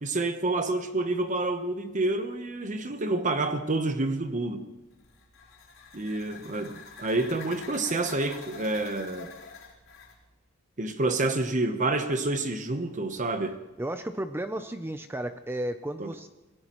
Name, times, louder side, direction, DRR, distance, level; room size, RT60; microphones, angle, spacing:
voice 1, 0.0-4.7 5.9-9.3 10.8-13.6 16.0-16.1, right 2 dB, 40° right, 0.9 m, -28 dB
sound 1, 4.9-10.2, left 5 dB, 75° left, 3.9 m, -46 dB
voice 2, 13.8-16.3, right 1 dB, 10° right, 0.5 m, -33 dB
26.0 x 18.0 x 3.0 m
head